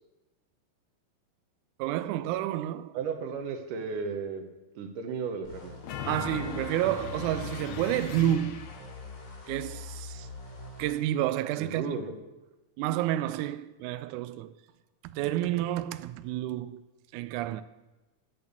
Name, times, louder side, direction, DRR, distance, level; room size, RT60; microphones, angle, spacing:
voice 1, 1.8-2.9 6.1-8.7 9.5-10.3 10.8-11.9 12.8-14.5 15.0-16.8 17.1-17.6, right 13 dB, 85° right, 1.7 m, -30 dB
voice 2, 2.9-4.4 4.8-5.7 11.6-12.1, right 5 dB, 70° right, 2.7 m, -34 dB
sound 1, 5.4-11.0, left 3 dB, 35° left, 2.9 m, -44 dB
sound 2, 5.8-9.0, left 8 dB, 70° left, 1.7 m, -39 dB
12.5 x 8.6 x 7.0 m
omnidirectional pair, 4.0 m